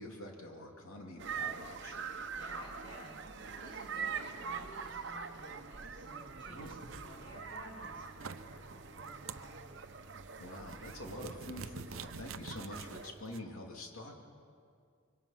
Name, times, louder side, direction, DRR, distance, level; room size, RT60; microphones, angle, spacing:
voice 1, 0.0-2.0 6.5-6.8 10.4-14.2, left 1 dB, 90° left, 1 dB, 2.9 m, -46 dB
sound 1, 1.2-13.1, right 6 dB, 55° right, 1.0 m, -44 dB
voice 2, 2.3-9.6, equal, 25° left, -3 dB, 6.6 m, -53 dB
sound 2, 6.9-13.4, right 5 dB, 70° right, 0.7 m, -49 dB
25.0 x 23.5 x 5.9 m, 2.3 s
head